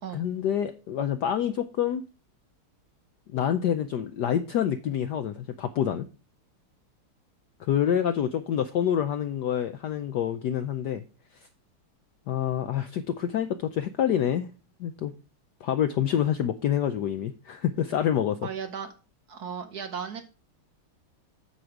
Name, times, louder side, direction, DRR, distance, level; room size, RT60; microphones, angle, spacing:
voice 1, 0.1-2.0 3.3-6.1 7.6-11.0 12.3-14.5 14.8-15.1 15.6-18.4, left 9 dB, 75° left, 0.9 m, -27 dB
voice 2, 18.4-18.9 19.3-20.2, right 7 dB, 55° right, 1.3 m, -35 dB
8.7 x 6.6 x 4.6 m
omnidirectional pair, 2.4 m